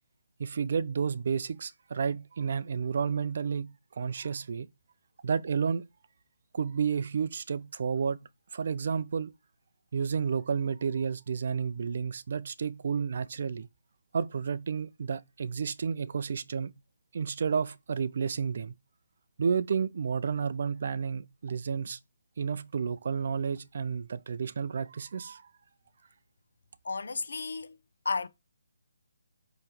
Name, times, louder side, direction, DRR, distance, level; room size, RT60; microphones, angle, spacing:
voice 1, 0.4-4.7 5.2-5.9 6.5-8.2 8.5-9.3 9.9-13.7 14.1-16.7 17.1-18.7 19.4-22.0 22.4-25.5, right 6 dB, 45° right, 0.4 m, -31 dB
voice 2, 26.8-27.8 28.0-28.3, left 4 dB, 70° left, 0.7 m, -32 dB
7.3 x 3.1 x 4.9 m
hypercardioid pair, 170°, 0 cm